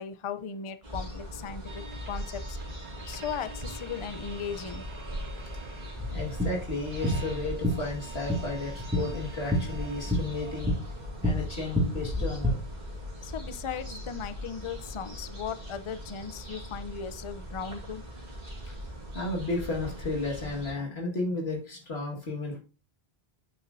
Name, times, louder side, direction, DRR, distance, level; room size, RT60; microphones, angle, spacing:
voice 1, 0.0-2.6 3.1-4.9 13.2-18.0, left 7 dB, 35° left, 11 dB, 0.5 m, -37 dB
sound 1, 0.8-20.7, equal, 40° right, 2.5 m, -40 dB
sound 2, 1.6-10.6, right 4 dB, 75° right, 3.3 m, -48 dB
sound 3, 6.0-12.5, left 1 dB, 10° right, 2.1 m, -30 dB
voice 2, 6.1-10.8 11.2-12.6 19.1-22.6, left 2 dB, 75° left, 0 dB, 2.1 m, -33 dB
8.8 x 7.3 x 2.6 m, 0.32 s
omnidirectional pair, 1.1 m